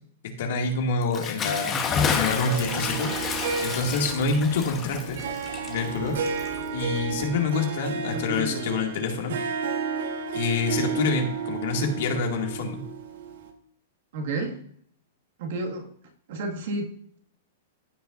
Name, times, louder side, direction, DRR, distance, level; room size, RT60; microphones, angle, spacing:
voice 1, 0.4-3.1 3.6-5.2 5.7-6.2 6.7-9.3 10.3-12.8, left 4 dB, 55° left, 2 dB, 2.2 m, -27 dB
Bathtub (filling or washing) / Splash splatter, 1.0-7.0, left 6 dB, 15° left, 1.1 m, -30 dB
sound 1, 1.9-7.4, equal, 30° right, 2.9 m, -45 dB
Harp, 2.4-13.5, right 5 dB, 70° right, 1.4 m, -32 dB
voice 2, 8.1-8.7 14.1-14.6 15.4-15.9 16.3-17.2, right 2 dB, 50° right, 2 dB, 1.9 m, -31 dB
15.5 x 5.6 x 2.6 m, 0.62 s
supercardioid pair, 170°, 0 cm